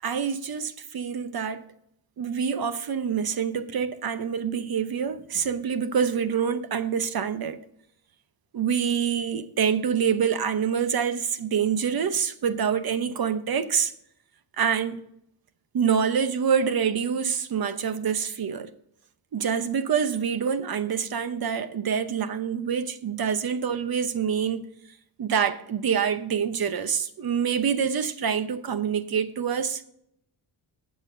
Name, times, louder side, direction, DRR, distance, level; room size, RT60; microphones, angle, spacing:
voice 1, 0.0-1.6 2.2-7.6 8.5-13.9 14.6-15.0 15.7-18.7 19.3-24.6 25.2-29.8, right 7 dB, 50° right, 0.9 m, -26 dB
21.0 x 7.2 x 2.6 m
wide cardioid pair, 170°, 47 cm